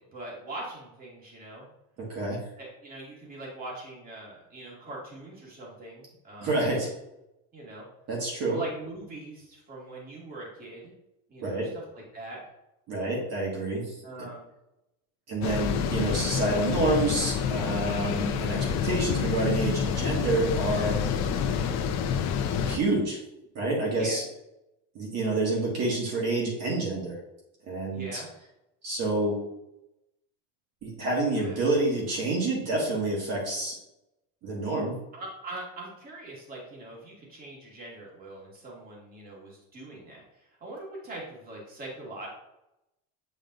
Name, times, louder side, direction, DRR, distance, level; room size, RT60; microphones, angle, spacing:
voice 1, 0.0-1.7 2.6-6.6 7.5-7.9 8.5-10.9 11.3-11.6 11.9-12.4 14.0-14.5 24.0-24.2 27.9-28.3 31.4-31.6 35.1-42.3, right 2 dB, 25° right, -4 dB, 2.1 m, -42 dB
voice 2, 2.0-2.4 6.4-6.9 8.1-8.6 11.4-11.7 12.9-14.0 15.3-21.0 22.7-23.2 23.5-24.2 24.9-27.2 27.6-28.2 28.8-29.4 30.8-33.8 34.4-34.9, right 2 dB, 50° right, -4 dB, 2.0 m, -28 dB
sound 1, 15.4-22.8, left 7 dB, 55° left, 0.8 m, -28 dB
7.6 x 5.2 x 2.6 m, 0.88 s
cardioid pair, 145°, 33 cm